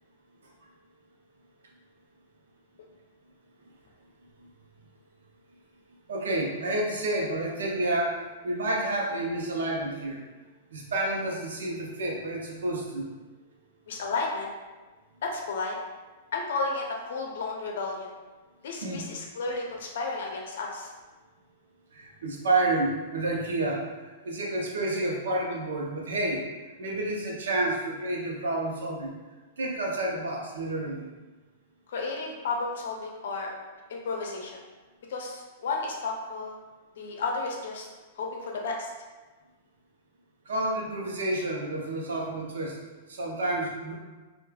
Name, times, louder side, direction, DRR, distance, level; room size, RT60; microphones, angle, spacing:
voice 1, 6.1-10.2 10.7-13.1 18.8-19.0 21.9-26.4 26.8-29.1 29.6-31.1 40.5-42.8 43.1-43.9, right 2 dB, 80° right, -2 dB, 0.6 m, -29 dB
voice 2, 13.9-14.5 15.2-15.8 16.3-18.1 18.6-20.9 31.9-33.5 33.9-34.5 35.1-36.6 37.0-37.9 38.2-38.9, left 3 dB, 70° left, 0 dB, 0.5 m, -32 dB
3.0 x 2.2 x 2.2 m, 1.3 s
hypercardioid pair, 115°, 0 cm